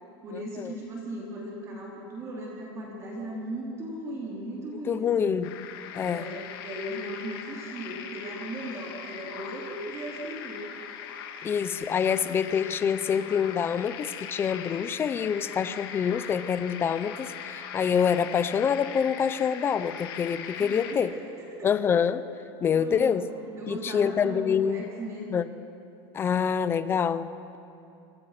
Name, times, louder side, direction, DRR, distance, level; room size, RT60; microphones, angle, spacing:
voice 1, 0.2-5.4 6.0-10.7 20.6-21.7 22.7-25.4, right 1 dB, 20° right, -3 dB, 4.0 m, -37 dB
voice 2, 4.9-5.5 5.9-6.3 11.4-21.1 21.6-22.2 22.6-23.3 23.7-24.9 25.3-25.5 26.1-27.6, left 7 dB, 20° left, 14 dB, 0.7 m, -26 dB
sound 1, 5.4-20.9, left 8 dB, 70° left, 2.8 m, -40 dB
28.0 x 26.0 x 6.1 m, 2.8 s
supercardioid pair, 170°, 13 cm